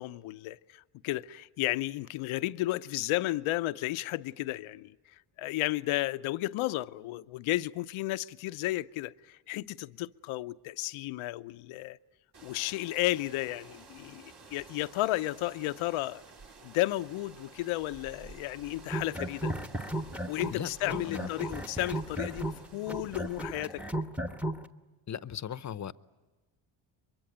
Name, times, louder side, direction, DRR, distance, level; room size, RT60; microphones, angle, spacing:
voice 1, 0.0-12.0 12.4-16.2 16.6-19.5 20.3-23.8, left 17 dB, 80° left, 0.7 m, -33 dB
sound 1, 12.3-24.0, right 4 dB, 55° right, 3.5 m, -53 dB
sound 2, 18.8-20.6 20.9-24.6, right 1 dB, 5° right, 1.1 m, -34 dB
voice 2, 20.5-21.3 25.1-25.9, left 9 dB, 35° left, 0.8 m, -37 dB
23.5 x 23.0 x 9.1 m
cardioid pair, 85°, 48 cm